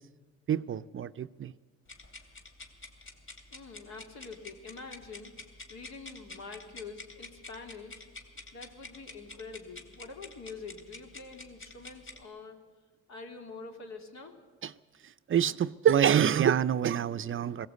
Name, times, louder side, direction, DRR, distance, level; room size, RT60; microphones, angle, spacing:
voice 1, 0.5-1.5 14.6-14.7 15.0-17.7, right 9 dB, 45° right, 0.6 m, -26 dB
sound 1, 1.9-12.2, left 3 dB, 40° left, 2.8 m, -48 dB
voice 2, 3.5-5.3 5.7-8.0 8.5-12.6 13.1-14.3, left 4 dB, 65° left, 3.1 m, -45 dB
20.0 x 17.0 x 8.2 m
cardioid pair, 90°, 30 cm